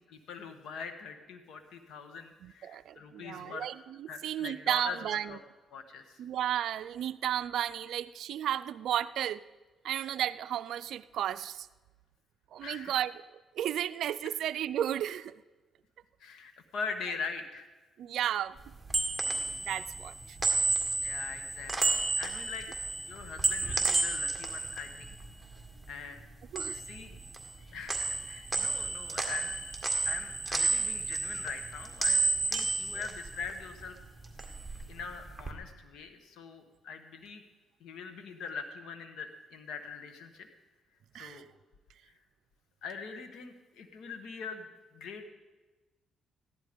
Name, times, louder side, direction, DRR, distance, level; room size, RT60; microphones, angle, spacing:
voice 1, 0.1-3.7 4.1-5.4 5.7-6.2 12.6-13.0 16.2-17.7 21.0-22.7 23.0-25.1 25.9-26.2 26.7-27.2 27.7-28.0 28.3-29.5 30.0-34.0 34.9-37.4 37.8-40.5 41.1-41.4 42.0-42.1 42.8-45.2, left 5 dB, 80° left, 6 dB, 1.2 m, -42 dB
voice 2, 2.4-5.3 6.2-9.4 9.8-11.7 12.5-13.2 13.5-15.3 18.0-18.6 19.3-20.4 26.5-26.8 41.1-41.4, right 11 dB, 75° right, 14 dB, 0.4 m, -33 dB
sound 1, 18.6-25.9 26.2-27.6 27.9-33.9 34.2-35.5, right 3 dB, 5° right, 2.0 m, -32 dB
15.0 x 11.0 x 5.1 m, 1.2 s
cardioid pair, 90°, 0 cm